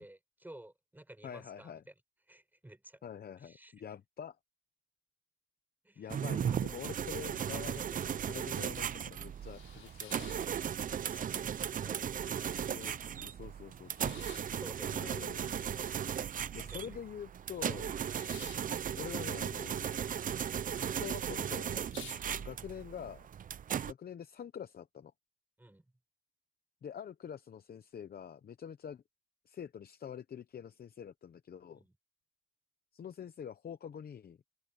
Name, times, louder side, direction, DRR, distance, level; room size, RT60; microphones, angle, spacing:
voice 1, 0.0-1.8 2.3-3.1 3.4-3.7 5.8-6.1 10.8-12.0 14.5-15.3 16.6-17.0 17.7-17.8 22.4-22.6 25.6-25.8 31.7-31.9, right 1 dB, 10° right, 5.0 m, -54 dB
voice 2, 1.2-1.8 3.0-4.4 6.0-10.5 12.7-14.1 14.9-15.5 16.5-17.9 18.9-19.8 20.9-21.9 22.2-23.3 23.9-25.1 26.8-29.0 29.5-31.8 32.9-34.4, left 8 dB, 50° left, 0.7 m, -46 dB
sound 1, 6.1-23.9, right 8 dB, 40° right, 0.4 m, -37 dB
sound 2, 9.2-11.2 11.5-12.2 12.6-12.7 12.9-17.0 17.3-20.1 20.3-20.9 21.3-21.4 21.7-22.8, left 9 dB, 85° left, 5.0 m, -54 dB
open air
wide cardioid pair, 170°, 21 cm